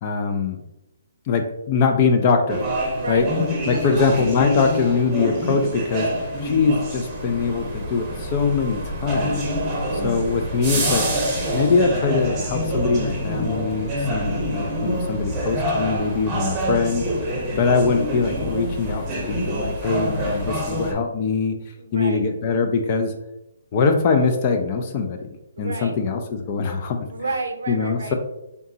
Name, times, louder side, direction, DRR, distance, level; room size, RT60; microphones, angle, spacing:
voice 1, 0.0-0.6 1.3-2.6 3.1-3.3 3.7-6.1 6.4-9.4 9.9-11.1 11.5-17.1 17.5-21.6 21.9-23.1 23.7-25.2 25.6-27.1 27.7-28.1, left 4 dB, 35° left, 5 dB, 0.4 m, -22 dB
sound 1, 2.5-20.9, equal, 15° right, 0.9 m, -26 dB
voice 2, 3.0-3.3 3.6-3.9 21.8-22.2 25.6-25.9 27.1-28.1, right 3 dB, 80° right, 6 dB, 0.6 m, -31 dB
3.9 x 3.4 x 2.7 m, 0.90 s
hypercardioid pair, 155°, 0 cm